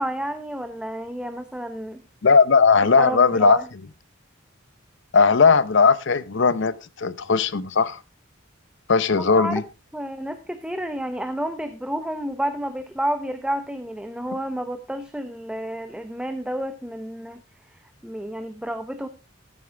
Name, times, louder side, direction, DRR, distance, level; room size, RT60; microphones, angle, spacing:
voice 1, 0.0-2.0 3.0-3.6 9.2-9.6 9.9-17.4 17.7-19.1, right 1 dB, 5° right, 0.7 m, -30 dB
voice 2, 2.2-3.6 5.1-8.0 8.9-9.6, left 5 dB, 60° left, 0.7 m, -18 dB
14.5 x 8.7 x 3.4 m
head